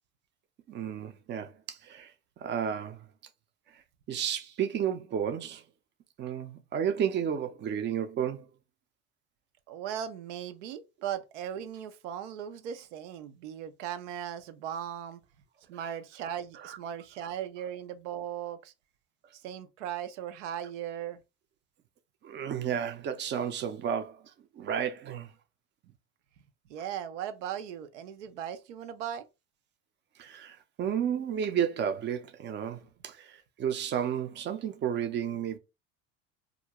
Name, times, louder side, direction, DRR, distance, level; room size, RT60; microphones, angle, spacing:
voice 1, 0.7-2.1 2.4-3.0 4.1-5.6 6.2-8.4 16.6-16.8 22.2-24.2 24.6-25.3 30.2-35.6, right 8 dB, 30° right, 0.4 m, -32 dB
voice 2, 9.7-15.2 15.7-18.7 19.3-21.2 26.7-29.2, right 9 dB, 90° right, 0.5 m, -38 dB
2.4 x 2.1 x 2.8 m
supercardioid pair, 95°, 35 cm